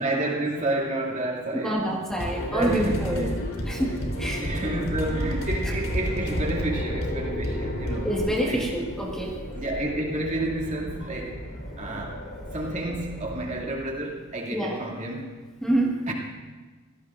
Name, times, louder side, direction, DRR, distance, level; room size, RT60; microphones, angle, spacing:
voice 1, 0.0-1.9 2.5-3.4 3.6-3.8 4.3-8.1 8.4-8.7 9.6-12.2 12.5-15.3 16.1-16.2, right 1 dB, 35° right, -2 dB, 2.5 m, -30 dB
voice 2, 1.6-3.3 3.7-4.4 8.0-9.4 14.5-14.8 15.6-16.0, right 1 dB, 5° left, -3 dB, 1.7 m, -27 dB
sound 1, 2.1-8.2, equal, 85° left, 3.5 m, -30 dB
sound 2, 2.4-13.7, equal, 55° left, 3.8 m, -37 dB
26.0 x 17.0 x 2.6 m, 1.3 s
head